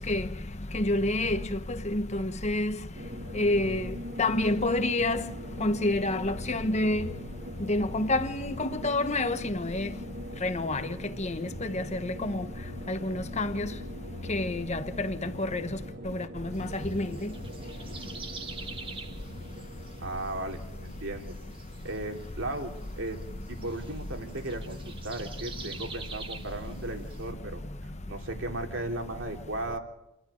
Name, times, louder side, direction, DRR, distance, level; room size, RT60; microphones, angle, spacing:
voice 1, 0.7-1.4 1.9-2.7 3.4-3.9 4.2-5.2 5.6-7.1 7.7-9.9 10.4-10.8 11.2-11.3 11.7-12.4 12.9-13.7 14.3-15.6 16.4-16.6 16.9-17.1, left 2 dB, 30° left, 1.2 m, -28 dB
sound 1, 2.9-22.5, equal, 45° right, 2.3 m, -43 dB
sound 2, 16.5-27.3, right 4 dB, 25° right, 1.5 m, -46 dB
voice 2, 20.0-21.3 21.8-23.2 23.5-29.8, right 2 dB, 60° right, 3.1 m, -36 dB
29.5 x 12.0 x 9.2 m
head